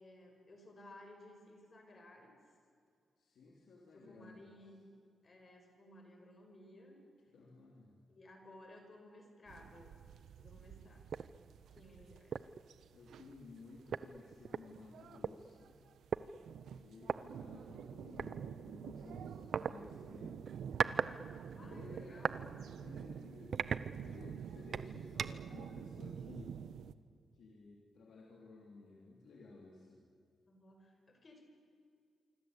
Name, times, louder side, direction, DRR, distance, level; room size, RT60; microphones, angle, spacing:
voice 1, 0.0-2.3 3.9-4.9 5.2-7.0 8.1-10.0 10.4-11.1 11.7-12.4 21.5-22.7 30.5-31.4, left 1 dB, 30° left, 4 dB, 5.2 m, -57 dB
voice 2, 3.2-4.5 7.3-8.0 10.6-10.9 12.9-15.9 16.7-20.4 21.5-22.5 22.7-26.5 27.3-30.0, left 3 dB, 70° left, -2 dB, 3.6 m, -55 dB
sound 1, 9.5-26.9, right 8 dB, 85° right, 1.0 m, -49 dB
sound 2, 11.1-11.3 11.8-11.9 12.3-12.6 13.6-13.7 13.9-15.3 16.1-16.3 17.0-17.2 18.2-18.4 19.5-19.7 20.5-21.1 21.5-22.4 22.9-23.0 23.5-24.3 24.7-25.5, right 6 dB, 50° right, 0.7 m, -37 dB
25.5 x 25.5 x 8.4 m, 2.2 s
wide cardioid pair, 150°, 0 cm